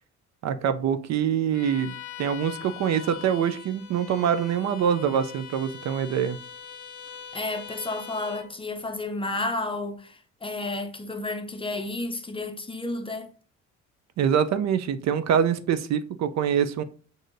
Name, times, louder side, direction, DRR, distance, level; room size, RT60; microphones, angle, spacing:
voice 1, 0.4-1.9 2.2-6.4 14.2-16.8, right 8 dB, 60° right, 0.4 m, -24 dB
Bowed string instrument, 1.5-8.5, left 8 dB, 75° left, 0.6 m, -42 dB
voice 2, 7.3-13.3, left 2 dB, 20° left, 0.5 m, -31 dB
6.1 x 2.6 x 2.5 m
cardioid pair, 90°, 30 cm